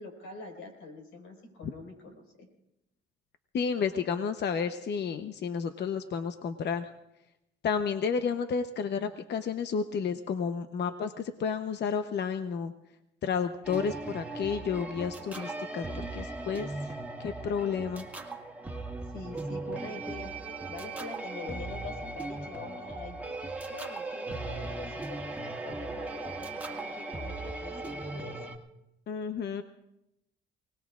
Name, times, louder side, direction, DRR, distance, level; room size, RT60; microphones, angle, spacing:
voice 1, 0.0-2.5 19.1-20.3 20.7-23.2 23.7-28.4, left 3 dB, 85° left, 2 dB, 4.9 m, -44 dB
voice 2, 3.5-6.9 7.6-12.7 13.2-16.8 17.2-18.0 29.1-29.6, left 6 dB, 60° left, 8 dB, 0.9 m, -31 dB
sound 1, 13.6-28.6, right 2 dB, 5° right, 2.0 m, -38 dB
28.5 x 19.0 x 2.5 m, 0.87 s
cardioid pair, 90°, 20 cm